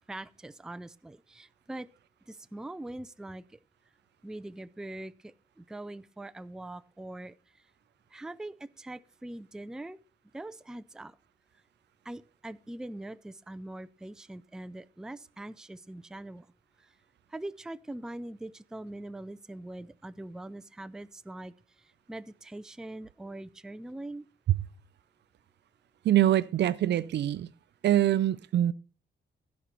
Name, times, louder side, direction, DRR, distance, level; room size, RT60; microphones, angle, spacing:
voice 1, 0.1-1.9 2.3-3.6 4.2-7.6 8.1-10.0 10.3-11.2 12.0-16.5 16.8-16.9 17.3-24.3, right 1 dB, 5° right, 0.4 m, -42 dB
voice 2, 26.0-27.5 27.8-28.7, right 12 dB, 65° right, 0.5 m, -24 dB
15.5 x 5.3 x 4.3 m
cardioid pair, 105°, 19 cm